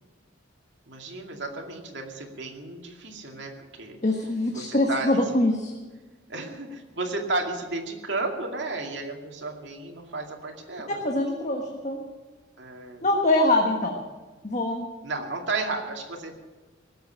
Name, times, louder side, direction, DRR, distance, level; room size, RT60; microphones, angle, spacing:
voice 1, 0.9-3.5 3.8-4.0 4.5-5.2 6.3-11.0 12.6-13.1 15.0-16.3, right 3 dB, 65° right, 1 dB, 2.4 m, -33 dB
voice 2, 4.0-5.7 10.9-12.1 13.0-14.0 14.4-14.9, left 1 dB, 40° left, 2 dB, 1.3 m, -24 dB
18.5 x 7.9 x 8.8 m, 1.3 s
head